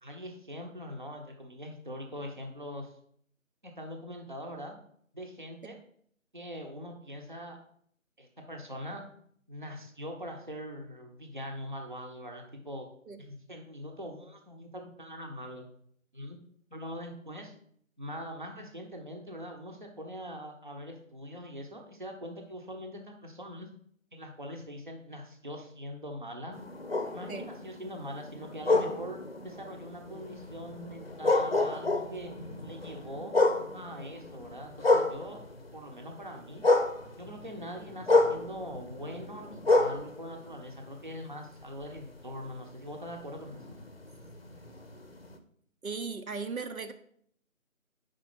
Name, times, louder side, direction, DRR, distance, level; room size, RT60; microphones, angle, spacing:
voice 1, 0.0-2.9 3.6-4.7 5.1-5.8 6.3-7.6 8.2-9.1 9.5-12.9 13.2-15.6 16.1-16.4 16.7-17.5 18.0-23.7 24.1-26.6 27.1-32.3 32.6-33.4 33.7-35.4 35.7-36.7 37.2-43.8, equal, 35° right, 2 dB, 0.8 m, -42 dB
sound 1, 26.5-35.8 36.1-41.3 41.8-45.4, left 2 dB, 45° left, 0.6 m, -30 dB
voice 2, 45.8-46.9, right 4 dB, 85° right, 7 dB, 0.9 m, -37 dB
5.1 x 4.7 x 5.9 m, 0.63 s
figure-of-eight pair, 170°, 41 cm